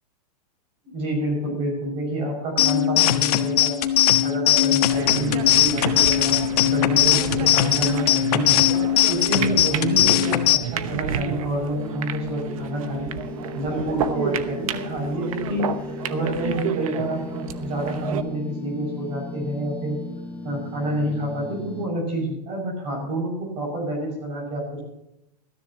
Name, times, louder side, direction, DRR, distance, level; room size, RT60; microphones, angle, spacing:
voice 1, 0.8-3.8 4.2-8.6 9.1-13.1 13.5-20.0 20.4-24.8, right 1 dB, 25° right, 1 dB, 6.1 m, -28 dB
sound 1, 2.6-10.6, left 12 dB, 65° left, 1.4 m, -20 dB
sound 2, 4.9-18.2, right 9 dB, 55° right, 1.0 m, -31 dB
sound 3, 11.8-21.9, left 3 dB, 5° left, 0.6 m, -37 dB
20.0 x 13.5 x 2.9 m, 0.83 s
supercardioid pair, 175°, 21 cm